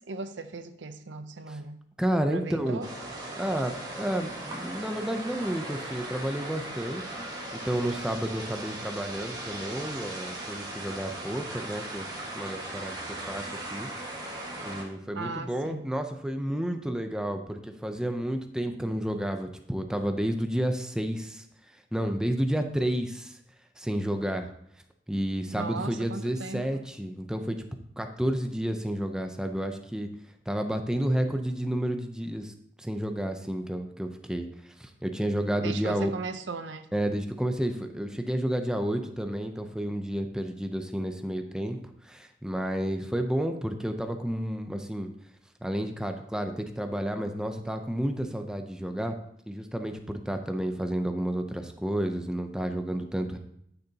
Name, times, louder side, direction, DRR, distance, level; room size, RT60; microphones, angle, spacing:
voice 1, 0.0-1.8 2.3-2.9 15.2-15.9 25.5-26.8 35.6-36.9, right 3 dB, 80° right, 0.6 m, -37 dB
voice 2, 2.0-2.8 3.4-7.3 7.5-12.1 12.3-13.9 14.6-21.4 21.9-23.4 23.8-24.5 25.1-27.6 28.0-30.1 30.5-32.5 32.8-36.1 36.9-41.8 42.0-45.1 45.6-49.2 49.5-53.4, equal, 5° right, 0.6 m, -31 dB
sound 1, 2.8-14.8, right 1 dB, 20° right, 1.6 m, -38 dB
11.5 x 6.8 x 2.8 m
head